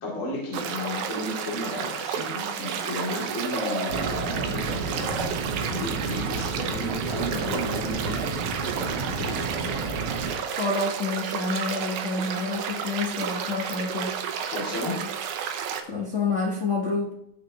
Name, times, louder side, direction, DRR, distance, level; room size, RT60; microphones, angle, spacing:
voice 1, 0.0-9.8 14.4-15.0, left 2 dB, 45° left, -5 dB, 3.4 m, -34 dB
sound 1, 0.5-15.8, right 8 dB, 85° right, 2.3 m, -32 dB
sound 2, 3.5-4.5 4.8-5.3 5.7-5.9 6.3-6.4 6.6-6.7 7.0-9.0 9.3-12.4, right 1 dB, 35° right, 2.6 m, -37 dB
sound 3, 3.9-10.3, right 4 dB, 60° right, 1.7 m, -32 dB
voice 2, 10.5-14.2 15.9-17.2, left 3 dB, 70° left, -2 dB, 0.7 m, -28 dB
17.0 x 6.1 x 3.0 m, 0.76 s
omnidirectional pair, 3.4 m